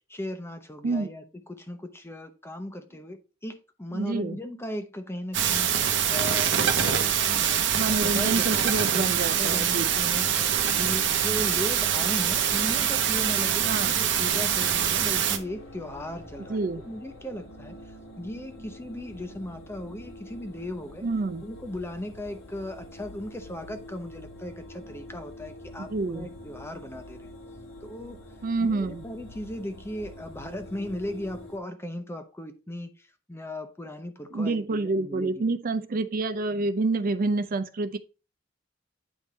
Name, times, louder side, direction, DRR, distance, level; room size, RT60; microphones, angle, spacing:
voice 1, 0.1-5.7 6.1-7.7 8.0-10.5 10.7-17.8 18.2-21.1 21.4-27.3 27.8-28.2 28.6-35.6, left 1 dB, 15° left, 0.8 m, -37 dB
voice 2, 3.9-4.4 7.7-9.9 13.7-14.0 16.5-16.8 21.0-21.4 25.8-26.3 28.4-29.0 34.3-38.0, right 3 dB, 45° right, 0.5 m, -28 dB
sound 1, 5.3-15.4, right 8 dB, 65° right, 0.9 m, -24 dB
sound 2, 14.7-31.6, left 1 dB, 80° left, 1.5 m, -46 dB
9.2 x 3.5 x 4.1 m
head